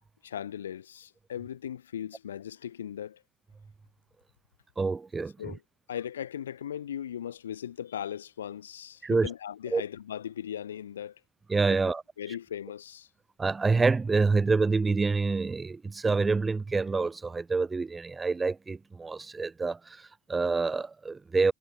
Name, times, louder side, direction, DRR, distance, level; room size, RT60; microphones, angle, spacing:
voice 1, 0.2-3.2 5.4-5.6 5.9-11.2 12.2-13.1, left 9 dB, 75° left, 5.7 m, -38 dB
voice 2, 4.8-5.5 9.0-9.3 9.7-9.8 11.5-12.0 13.4-21.5, right 4 dB, 25° right, 4.7 m, -27 dB
figure-of-eight pair, 55°, 0 cm